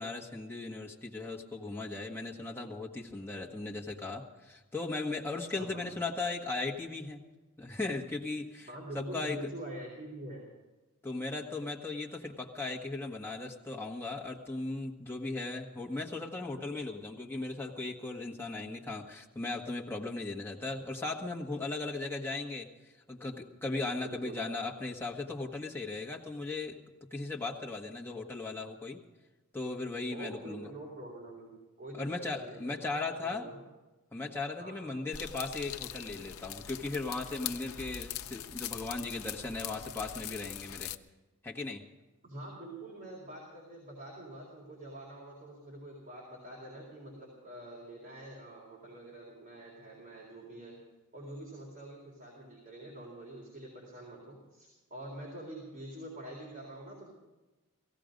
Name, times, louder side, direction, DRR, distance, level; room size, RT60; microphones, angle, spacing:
voice 1, 0.0-7.2 7.6-8.7 8.9-9.5 11.0-22.7 23.1-26.8 27.1-29.0 29.5-30.7 31.9-33.5 34.1-40.9 41.4-41.9, left 3 dB, 10° left, -2 dB, 1.4 m, -37 dB
voice 2, 8.7-10.5 24.0-24.4 30.1-33.6 34.6-35.0 42.2-50.8 51.1-57.1, right 1 dB, 40° right, -3 dB, 3.8 m, -45 dB
sound 1, 35.1-41.0, left 10 dB, 85° left, 0.6 m, -42 dB
17.5 x 16.0 x 5.2 m, 1.1 s
head